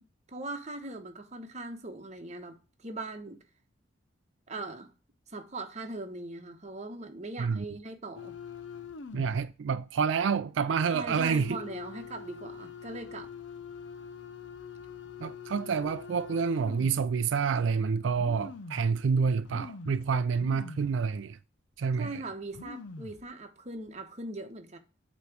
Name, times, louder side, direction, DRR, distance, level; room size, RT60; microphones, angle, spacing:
voice 1, 0.3-2.6 2.8-3.4 4.5-4.9 5.3-8.3 10.9-13.3 22.0-24.8, right 2 dB, 40° right, 1.1 m, -40 dB
sound 1, 8.2-9.5 9.9-10.0 11.1-17.2 17.7-17.8 18.1-19.0 19.4-21.0 21.3-21.4 22.2-22.3 22.4-23.3 23.8-24.0, left 5 dB, 75° left, 0.6 m, -44 dB
voice 2, 9.1-11.6 15.2-21.4 21.8-22.2, right 5 dB, 85° right, 0.4 m, -28 dB
8.3 x 3.1 x 6.0 m
head